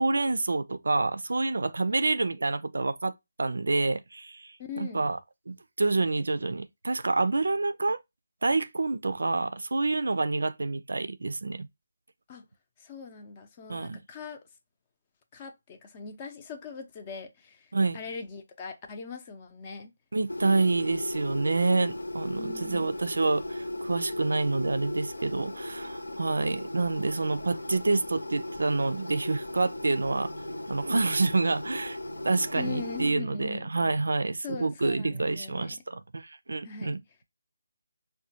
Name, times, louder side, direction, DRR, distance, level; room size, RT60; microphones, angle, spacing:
voice 1, 0.0-3.1 3.4-5.2 5.5-8.0 8.4-11.7 13.7-14.0 17.7-18.0 20.1-30.3 30.7-32.0 32.2-37.2, right 3 dB, 70° right, 0.4 m, -28 dB
voice 2, 4.7-5.0 12.3-12.5 12.8-14.4 15.3-19.9 22.4-22.9 32.5-33.7 34.4-35.8 36.6-36.9, left 5 dB, 25° left, 0.6 m, -41 dB
sound 1, 20.3-33.1, left 1 dB, 80° left, 0.5 m, -37 dB
4.9 x 2.2 x 2.7 m
figure-of-eight pair, 155°, 0 cm